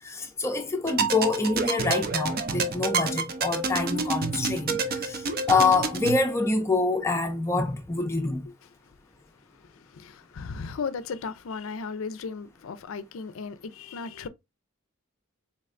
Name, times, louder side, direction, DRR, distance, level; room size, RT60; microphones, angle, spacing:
voice 1, 0.0-8.5, left 3 dB, 15° left, 0.4 m, -26 dB
sound 1, 0.8-6.2, right 4 dB, 45° right, 0.5 m, -28 dB
voice 2, 9.5-14.3, left 5 dB, 65° left, 0.4 m, -36 dB
4.1 x 3.2 x 2.4 m
head